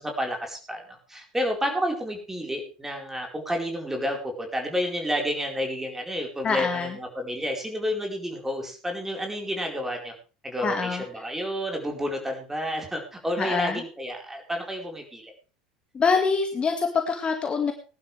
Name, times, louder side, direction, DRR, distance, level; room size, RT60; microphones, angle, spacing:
voice 1, 0.0-10.1 10.4-15.3, equal, 10° right, 2 dB, 4.5 m, -30 dB
voice 2, 6.4-7.0 10.6-11.0 13.4-13.8 15.9-17.7, left 5 dB, 25° left, 5 dB, 2.0 m, -25 dB
19.5 x 11.5 x 3.4 m, 0.35 s
figure-of-eight pair, 75°, 4 cm